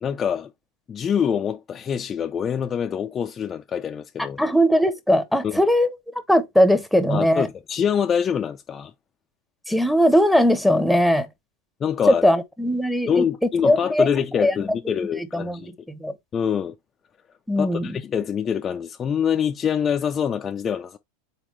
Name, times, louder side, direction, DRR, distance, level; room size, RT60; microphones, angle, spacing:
voice 1, 0.0-0.5 0.9-4.4 5.4-5.6 7.1-8.9 11.8-12.3 13.1-15.7 16.3-16.8 17.6-21.0, left 7 dB, 30° left, 0.5 m, -25 dB
voice 2, 4.2-5.9 6.3-7.5 9.7-11.3 12.1-13.3 13.6-14.1 14.4-14.5 15.3-15.6 16.0-16.1 17.5-18.0, equal, ahead, 0.9 m, -19 dB
4.0 x 3.6 x 3.1 m
hypercardioid pair, 95°, 0 cm